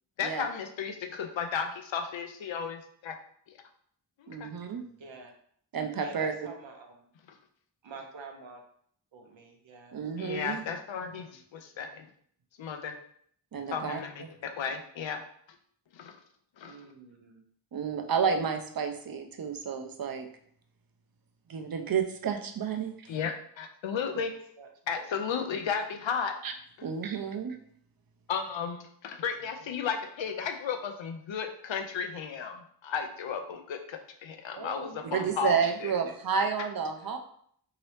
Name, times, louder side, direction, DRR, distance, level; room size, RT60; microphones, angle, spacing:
voice 1, 0.2-3.2 3.5-3.6 4.2-4.5 10.2-12.1 12.6-12.9 13.7-15.2 15.9-16.2 16.6-16.8 23.1-24.3 24.9-26.3 28.3-36.0, left 6 dB, 90° left, 5 dB, 0.5 m, -34 dB
voice 2, 4.3-4.9 5.7-6.3 9.9-10.6 13.5-14.3 17.7-20.3 21.5-22.9 26.4-26.5 26.8-27.6 35.1-37.2, right 6 dB, 55° right, 6 dB, 0.6 m, -30 dB
voice 3, 5.0-5.3 6.0-7.1 7.8-8.6 9.1-10.0 10.4-10.6 11.2-11.4 16.6-17.4 23.9-24.2 24.6-24.7 24.9-25.3 25.6-25.7 29.4-29.7 34.5-35.5, right 4 dB, 90° right, 3 dB, 0.7 m, -47 dB
2.9 x 2.8 x 3.1 m, 0.63 s
cardioid pair, 50°, 44 cm